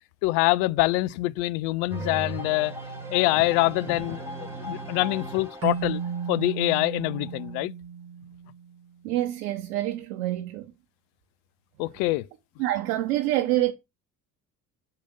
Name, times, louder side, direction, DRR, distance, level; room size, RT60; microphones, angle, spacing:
voice 1, 0.2-2.8 3.1-6.0 6.3-7.7 11.8-12.3, left 19 dB, 65° left, 0.5 m, -25 dB
sound 1, 1.9-7.6, right 2 dB, 5° right, 2.6 m, -38 dB
sound 2, 3.3-4.5, left 3 dB, 20° left, 1.2 m, -44 dB
Keyboard (musical), 5.6-8.9, right 7 dB, 35° right, 0.6 m, -34 dB
voice 2, 9.0-10.7 12.6-13.7, right 15 dB, 70° right, 0.8 m, -26 dB
5.7 x 4.9 x 5.1 m
figure-of-eight pair, 50°, 45 cm